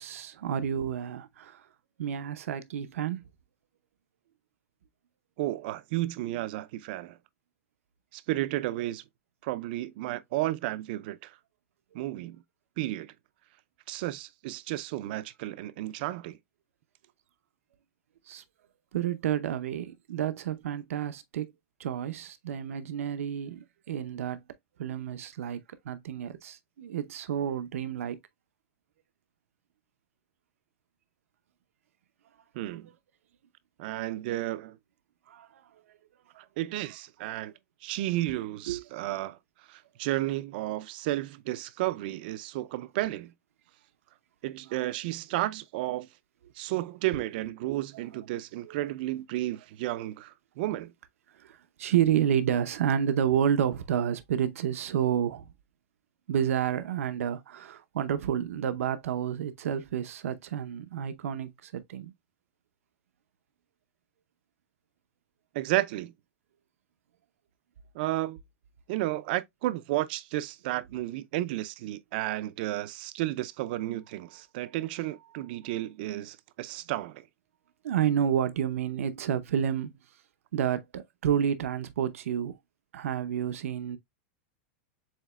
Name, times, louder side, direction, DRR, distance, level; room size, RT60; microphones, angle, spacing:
voice 1, 0.0-1.7 2.0-3.2 18.3-18.4 18.9-21.5 21.8-24.4 24.8-28.2 35.3-35.6 38.7-38.8 47.7-47.8 48.6-48.8 51.4-55.5 56.3-62.1 77.8-79.9 80.5-82.6 82.9-84.0, right 9 dB, 85° right, 0.7 m, -30 dB
voice 2, 5.4-7.2 8.1-9.0 9.4-11.4 11.9-12.4 12.8-13.1 13.9-16.4 32.5-32.9 33.8-34.8 36.4-37.5 37.8-39.4 39.7-43.3 44.4-46.1 46.6-50.9 65.5-66.1 67.9-68.4 68.9-77.2, right 16 dB, 45° right, 0.4 m, -32 dB
7.3 x 2.9 x 2.3 m
supercardioid pair, 165°, 7 cm